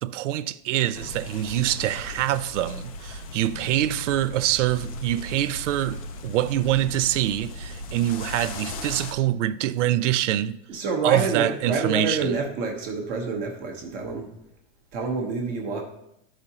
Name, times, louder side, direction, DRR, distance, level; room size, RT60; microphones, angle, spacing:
voice 1, 0.0-10.6 11.0-12.3, right 13 dB, 80° right, 0.5 m, -25 dB
sound 1, 0.9-9.1, left 2 dB, 30° left, 0.4 m, -37 dB
voice 2, 10.7-14.3 14.9-15.8, right 4 dB, 25° right, 0.9 m, -27 dB
12.0 x 5.1 x 2.8 m
supercardioid pair, 175°, 36 cm